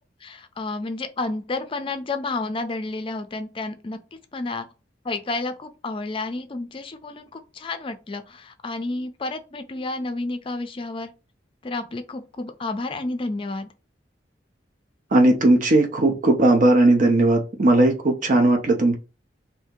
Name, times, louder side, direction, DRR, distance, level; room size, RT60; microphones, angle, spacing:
voice 1, 0.2-4.0 4.3-4.6 5.0-11.1 11.6-13.7, left 2 dB, 30° left, 0.4 m, -30 dB
voice 2, 15.1-19.0, right 2 dB, 45° right, 0.5 m, -17 dB
2.7 x 2.7 x 3.5 m
head